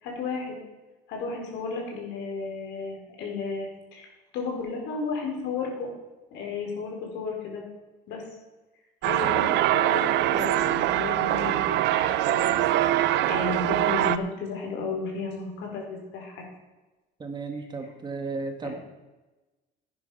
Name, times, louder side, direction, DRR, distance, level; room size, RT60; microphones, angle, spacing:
voice 1, 0.0-0.6 1.1-5.9 6.3-7.6 8.1-8.2 9.0-13.0 13.3-15.9 16.1-16.4 18.6-18.8, left 4 dB, 75° left, 0 dB, 4.5 m, -33 dB
sound 1, 9.0-14.2, right 13 dB, 70° right, 0.6 m, -23 dB
voice 2, 17.2-18.7, right 3 dB, 25° right, 5 dB, 1.4 m, -34 dB
11.5 x 9.6 x 5.7 m, 1.1 s
cardioid pair, 145°, 19 cm